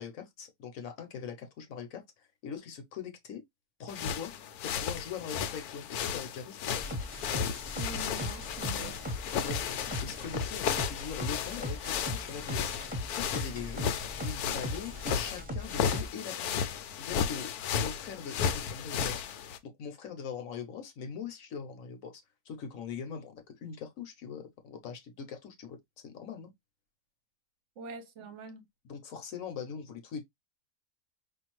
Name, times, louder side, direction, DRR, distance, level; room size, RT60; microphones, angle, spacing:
voice 1, 0.0-3.4 3.8-4.3 4.6-6.8 9.3-13.9 14.2-16.7 17.0-26.5 28.9-30.2, left 6 dB, 65° left, 1.2 m, -42 dB
sound 1, 3.9-19.6, left 8 dB, 85° left, 1.1 m, -34 dB
sound 2, 6.8-16.1, left 1 dB, 5° right, 0.9 m, -38 dB
voice 2, 7.8-9.0 27.8-28.6, right 4 dB, 60° right, 0.9 m, -44 dB
5.1 x 2.6 x 2.9 m
omnidirectional pair, 1.6 m